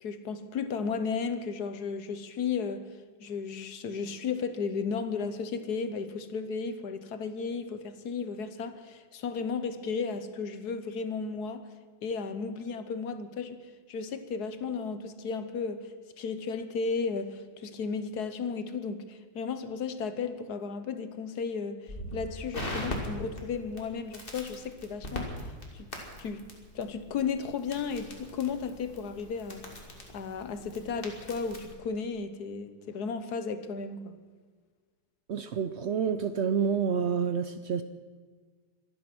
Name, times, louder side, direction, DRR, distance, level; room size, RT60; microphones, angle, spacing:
voice 1, 0.0-2.9 3.2-11.6 12.0-13.6 13.9-25.3 25.7-26.4 26.7-29.6 30.1-34.1, left 5 dB, 65° left, 11 dB, 1.5 m, -34 dB
Crackle, 21.9-31.7, left 1 dB, 30° left, 2.7 m, -41 dB
voice 2, 35.3-37.8, right 7 dB, 90° right, 10 dB, 0.5 m, -28 dB
24.5 x 9.5 x 6.1 m, 1.5 s
omnidirectional pair, 1.9 m